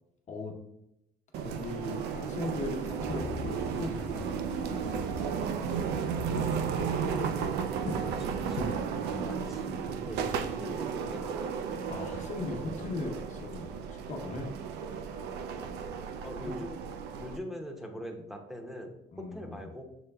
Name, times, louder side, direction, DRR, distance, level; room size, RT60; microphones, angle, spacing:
sound 1, 1.3-17.4, right 7 dB, 80° right, 0.4 m, -34 dB
voice 1, 1.4-5.2 9.0-10.3 11.9-14.5 16.4-16.5 19.1-19.6, left 2 dB, 45° left, 1 dB, 1.0 m, -39 dB
Walk footsteps / Chatter / Hiss, 2.8-8.8, left 2 dB, 75° left, 0.6 m, -41 dB
voice 2, 7.1-7.5 7.8-8.8 9.2-11.5 16.2-16.8 17.2-19.8, equal, ahead, 3 dB, 0.7 m, -42 dB
6.6 x 3.2 x 2.3 m, 0.84 s
cardioid pair, 110°, 17 cm